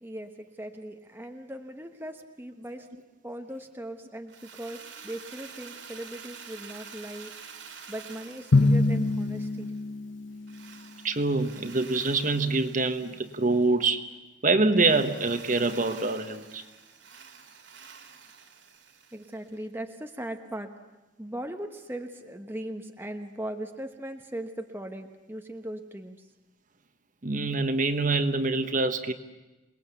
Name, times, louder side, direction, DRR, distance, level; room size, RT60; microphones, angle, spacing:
voice 1, 0.0-2.9 3.2-7.6 7.9-9.7 19.1-20.7 21.2-26.2, right 1 dB, 10° right, 5 dB, 1.0 m, -39 dB
Drill, 4.3-9.8 10.5-13.8 14.7-19.5, right 6 dB, 70° right, 2.9 m, -48 dB
Drum, 8.5-10.7, left 2 dB, 75° left, 0.8 m, -24 dB
voice 2, 11.0-14.1 14.4-16.6 27.2-29.1, right 3 dB, 40° right, 8 dB, 1.3 m, -25 dB
27.5 x 20.0 x 8.3 m, 1.1 s
head